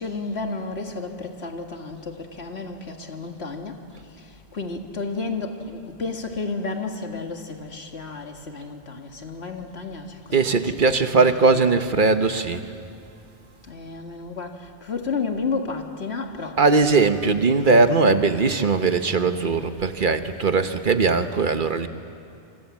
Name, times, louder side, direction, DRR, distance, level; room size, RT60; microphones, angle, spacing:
voice 1, 0.0-3.8 4.1-10.7 11.1-11.9 13.6-16.9 17.2-17.4, left 4 dB, 85° left, 4 dB, 2.2 m, -32 dB
voice 2, 10.3-12.7 16.6-21.9, right 4 dB, 55° right, 9 dB, 1.2 m, -20 dB
27.5 x 25.5 x 7.3 m, 2.6 s
omnidirectional pair, 1.1 m